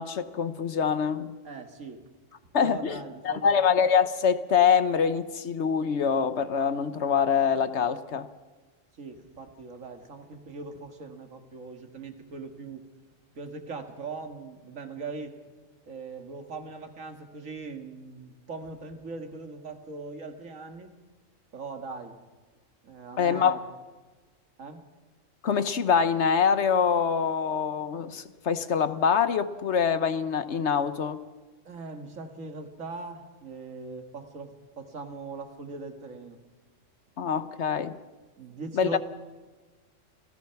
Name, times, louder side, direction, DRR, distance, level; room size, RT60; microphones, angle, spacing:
voice 1, 0.0-1.4 2.5-3.0 3.2-8.3 23.2-23.6 25.4-31.2 37.2-37.9 38.7-39.0, left 7 dB, 60° left, 12 dB, 1.1 m, -25 dB
voice 2, 1.4-2.0 2.6-3.5 9.0-12.9 13.3-15.4 15.9-20.9 21.5-22.2 22.8-23.6 24.6-24.8 31.6-36.4 38.4-39.0, right 4 dB, 75° right, 6 dB, 2.2 m, -40 dB
27.5 x 16.5 x 5.8 m, 1.3 s
omnidirectional pair, 1.3 m